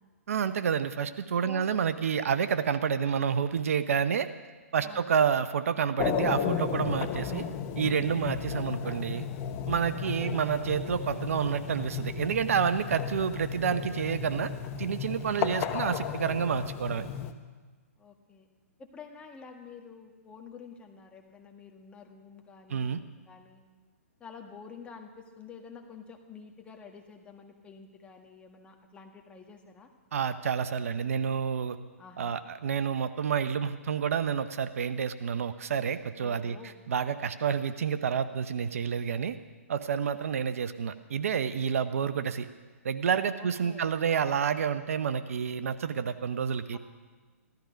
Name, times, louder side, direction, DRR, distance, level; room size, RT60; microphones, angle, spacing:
voice 1, 0.3-4.3 4.7-7.5 7.8-9.3 9.7-14.5 14.8-17.1 22.7-23.0 30.1-31.8 32.2-36.6 36.9-39.4 39.7-42.5 42.8-46.8, right 7 dB, 65° right, 12 dB, 0.8 m, -29 dB
sound 1, 6.0-17.3, left 8 dB, 30° left, 1.0 m, -34 dB
voice 2, 10.0-10.4 15.4-15.5 18.0-18.5 18.8-23.6 24.2-29.9 32.0-32.4 36.2-36.8 43.4-43.8 46.7-46.8, left 5 dB, 15° left, 3 dB, 1.7 m, -49 dB
15.5 x 13.5 x 5.2 m, 1.4 s
hypercardioid pair, 130°, 8 cm